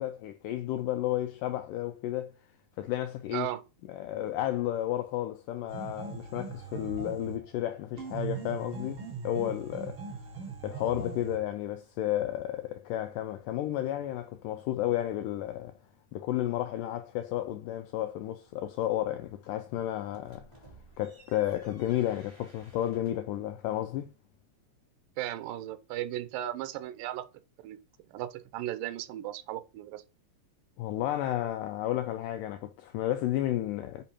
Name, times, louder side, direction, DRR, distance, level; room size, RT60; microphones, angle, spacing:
voice 1, 0.0-2.4 2.8-3.5 3.9-10.0 10.6-15.7 16.1-20.5 21.0-24.1 30.8-34.0, left 13 dB, 80° left, 2.0 m, -32 dB
voice 2, 3.3-3.6 25.2-27.2 27.6-27.8 28.1-30.0, right 13 dB, 80° right, 2.3 m, -36 dB
sound 1, 5.7-7.5 8.0-11.5, right 6 dB, 45° right, 2.0 m, -40 dB
sound 2, 20.1-23.3, right 2 dB, 15° right, 2.0 m, -57 dB
8.9 x 5.2 x 2.9 m
omnidirectional pair, 4.2 m